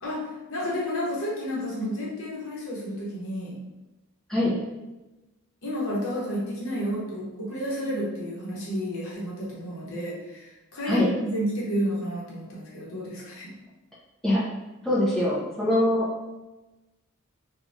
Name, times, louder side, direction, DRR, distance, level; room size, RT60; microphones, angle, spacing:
voice 1, 0.0-3.6 5.6-13.6, equal, 65° left, -5 dB, 0.9 m, -31 dB
voice 2, 14.8-16.1, left 1 dB, ahead, -8 dB, 0.5 m, -23 dB
3.1 x 2.2 x 2.6 m, 1.0 s
head